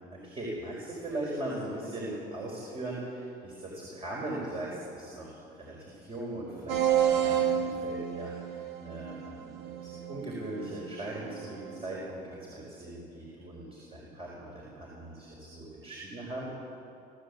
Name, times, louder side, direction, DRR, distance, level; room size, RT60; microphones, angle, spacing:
voice 1, 0.1-16.4, right 1 dB, 35° right, -3 dB, 4.9 m, -39 dB
sound 1, 6.7-12.0, right 9 dB, 75° right, 1.5 m, -31 dB
23.0 x 14.5 x 8.4 m, 2.8 s
cardioid pair, 110°, 17 cm